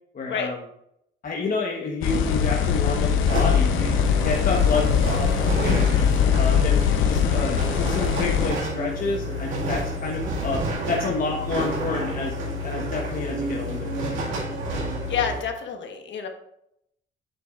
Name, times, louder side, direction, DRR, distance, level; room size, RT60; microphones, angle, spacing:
voice 1, 0.1-0.6 1.2-10.6 10.9-12.4 12.6-14.2, left 4 dB, 45° left, -1 dB, 1.2 m, -29 dB
sound 1, 2.0-8.5, left 7 dB, 85° left, 0.8 m, -21 dB
sound 2, 3.3-15.4, equal, 80° right, 2.0 m, -29 dB
voice 2, 15.1-16.3, left 7 dB, 65° left, 5 dB, 1.3 m, -28 dB
8.4 x 7.0 x 2.5 m, 0.76 s
cardioid pair, 90°, 20 cm